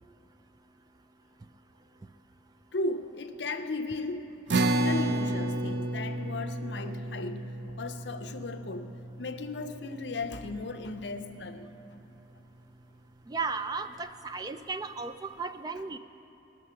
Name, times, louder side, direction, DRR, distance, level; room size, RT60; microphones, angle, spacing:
voice 1, 2.7-4.3 4.6-8.9 9.2-11.7, left 2 dB, 70° left, 0.6 m, -36 dB
sound 1, 4.5-11.1, right 1 dB, 75° right, 0.5 m, -32 dB
voice 2, 13.3-16.0, right 4 dB, 20° right, 0.3 m, -35 dB
19.5 x 6.7 x 5.7 m
head